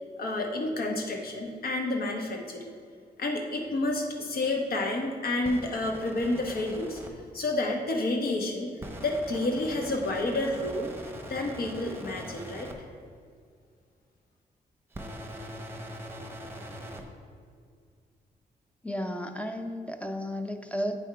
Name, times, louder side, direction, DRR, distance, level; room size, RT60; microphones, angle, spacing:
voice 1, 0.2-2.7 3.2-8.7 9.0-10.9 11.3-12.7, left 2 dB, 70° left, 1 dB, 1.0 m, -30 dB
sound 1, 5.4-7.1 8.8-12.7 14.9-17.0, right 1 dB, 15° right, 0.9 m, -42 dB
voice 2, 18.8-21.0, equal, 10° left, 6 dB, 0.5 m, -33 dB
9.0 x 3.5 x 4.6 m, 2.1 s
cardioid pair, 80°, 16 cm